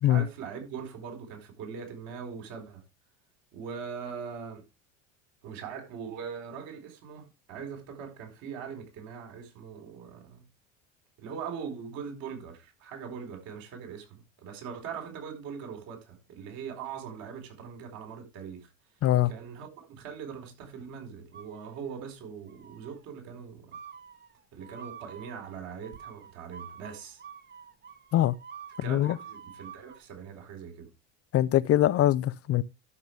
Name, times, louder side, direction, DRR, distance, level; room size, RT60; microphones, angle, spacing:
voice 1, 0.0-2.8 3.5-4.6 5.4-10.4 11.2-18.7 19.3-23.8 24.5-27.2 28.8-30.9, right 6 dB, 60° right, 4.8 m, -41 dB
sound 1, 21.3-22.1 22.5-23.0 23.7-30.0, right 7 dB, 25° right, 1.6 m, -48 dB
voice 2, 28.9-29.2 31.3-32.6, left 13 dB, 40° left, 0.7 m, -23 dB
12.5 x 6.7 x 3.4 m
hypercardioid pair, 90°, 38 cm